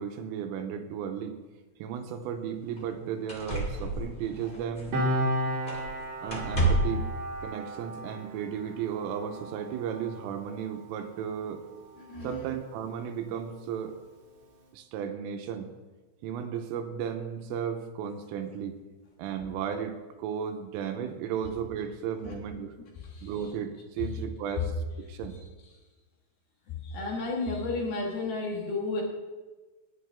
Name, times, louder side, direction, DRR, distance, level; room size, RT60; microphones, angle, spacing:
voice 1, 0.0-1.4 1.8-4.9 6.2-7.1 7.4-11.6 12.2-13.9 14.7-15.7 16.2-18.8 19.2-22.7 23.2-25.4, right 8 dB, 85° right, 7 dB, 3.4 m, -34 dB
sound 1, 2.0-2.1 2.8-2.9 3.3-5.2 5.7-6.0 6.3-7.1 8.2-8.3, right 2 dB, 30° left, 0.9 m, -30 dB
Piano, 4.9-11.9 12.2-12.4, equal, 55° right, 2.0 m, -34 dB
voice 2, 12.0-12.5 22.2-22.3 23.0-23.5 24.0-24.1 25.1-25.2 25.6-25.8 26.7-29.0, left 3 dB, 60° left, -2 dB, 3.1 m, -33 dB
19.0 x 9.4 x 3.5 m, 1.2 s
omnidirectional pair, 6.0 m